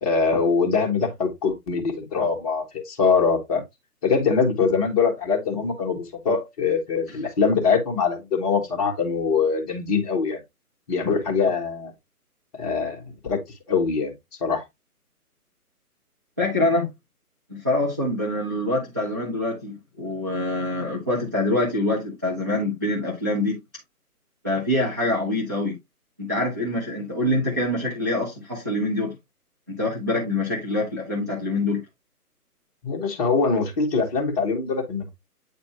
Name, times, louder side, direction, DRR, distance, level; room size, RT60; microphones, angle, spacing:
voice 1, 0.0-3.6 4.0-10.4 10.9-11.9 12.6-13.4 13.7-14.1 14.4-14.6 32.8-35.1, left 5 dB, 25° left, 1.5 m, -23 dB
voice 2, 16.4-16.9 17.5-23.6 24.4-25.8 26.2-29.1 29.7-31.8, left 1 dB, 10° right, 0.5 m, -25 dB
8.7 x 4.2 x 2.8 m
figure-of-eight pair, 140°, 46 cm